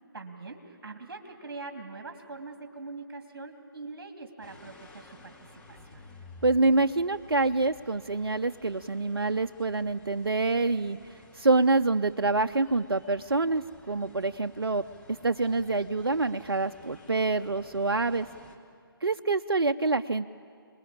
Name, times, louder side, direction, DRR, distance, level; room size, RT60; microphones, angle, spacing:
voice 1, 0.1-6.0, right 3 dB, 60° right, 4 dB, 2.5 m, -43 dB
sound 1, 4.4-18.6, left 3 dB, 10° left, 1.7 m, -53 dB
voice 2, 6.4-11.0 11.3-14.8 15.2-18.3 19.0-20.3, right 3 dB, 90° right, 8 dB, 0.6 m, -26 dB
28.5 x 20.5 x 8.7 m, 2.2 s
figure-of-eight pair, 145°, 12 cm